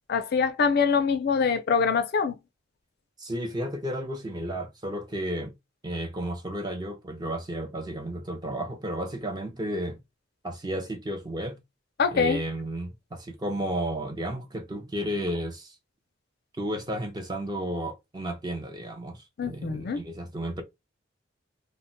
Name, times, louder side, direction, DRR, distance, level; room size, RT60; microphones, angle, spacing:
voice 1, 0.1-2.4 12.0-12.4 19.4-20.0, left 5 dB, 50° left, 0.4 m, -24 dB
voice 2, 3.2-5.5 5.8-10.0 10.4-11.6 12.1-15.8 16.6-20.6, right 1 dB, 20° right, 0.5 m, -33 dB
2.1 x 2.0 x 3.8 m
head